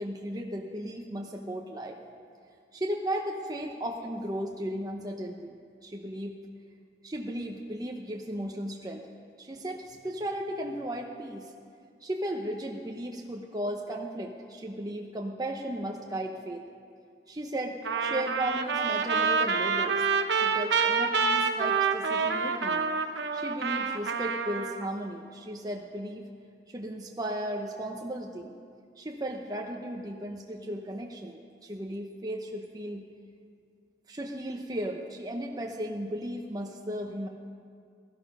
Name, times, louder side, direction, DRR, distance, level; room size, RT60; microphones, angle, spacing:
voice 1, 0.0-2.0 2.7-6.4 7.0-9.1 9.4-11.5 12.0-16.6 17.3-20.1 20.3-22.8 23.3-26.3 26.7-28.6 29.0-33.0 34.1-37.3, right 1 dB, 20° right, 0 dB, 0.8 m, -35 dB
Trumpet, 17.9-24.9, right 5 dB, 80° right, 0.9 m, -27 dB
17.5 x 13.0 x 5.4 m, 2.3 s
head